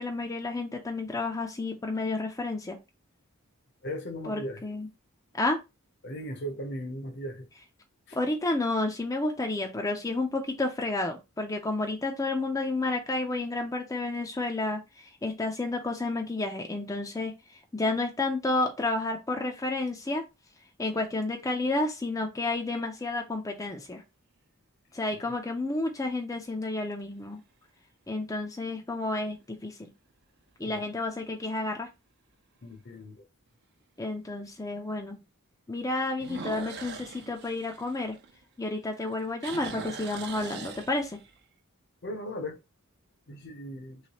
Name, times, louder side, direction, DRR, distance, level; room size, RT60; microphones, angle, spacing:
voice 1, 0.0-2.8 4.2-4.9 5.3-5.6 8.1-20.2 20.8-24.0 24.9-27.4 28.1-29.9 30.6-31.9 34.0-35.2 35.7-38.2 38.6-41.2, left 2 dB, 15° left, 0.4 m, -31 dB
voice 2, 3.8-4.7 6.0-7.5 8.1-8.2 25.1-25.2 30.6-30.9 32.6-33.2 42.0-42.6 43.3-44.0, equal, 55° left, 0.7 m, -37 dB
sound 1, 22.9-23.2 23.8-23.9 29.2-29.6 30.1-30.2 30.8-30.9 31.1-31.2 32.7-32.8 36.1-38.7 39.0-41.4, right 4 dB, 50° right, 0.6 m, -42 dB
3.2 x 3.1 x 2.9 m
head